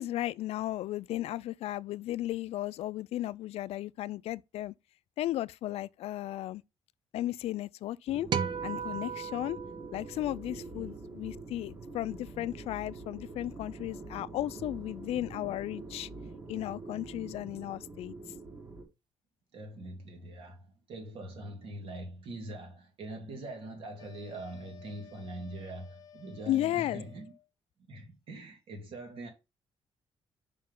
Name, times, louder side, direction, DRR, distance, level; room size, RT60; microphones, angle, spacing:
voice 1, 0.0-4.7 5.2-6.6 7.1-8.3 8.6-9.6 9.9-16.1 16.5-18.1 26.5-27.0, left 14 dB, 90° left, 0.4 m, -35 dB
sound 1, 8.1-18.8, right 3 dB, 25° right, 1.4 m, -45 dB
sound 2, 8.3-10.8, right 7 dB, 45° right, 0.6 m, -36 dB
voice 2, 19.5-27.3 27.9-29.3, right 1 dB, 65° right, 2.6 m, -43 dB
sound 3, 24.0-27.5, left 9 dB, 35° left, 0.9 m, -55 dB
5.5 x 5.2 x 3.7 m
cardioid pair, 160°, 10 cm